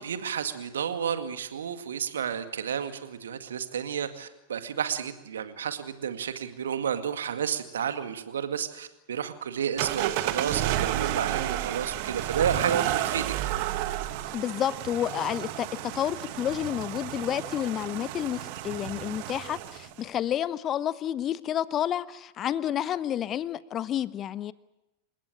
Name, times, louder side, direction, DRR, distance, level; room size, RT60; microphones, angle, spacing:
voice 1, 0.0-13.3, right 8 dB, 65° right, 9 dB, 2.0 m, -31 dB
sound 1, 9.8-20.0, right 14 dB, 45° right, 1.4 m, -31 dB
voice 2, 14.3-24.5, left 10 dB, 30° left, 18 dB, 0.9 m, -30 dB
28.5 x 17.5 x 8.9 m, 0.95 s
figure-of-eight pair, 90°, 0 cm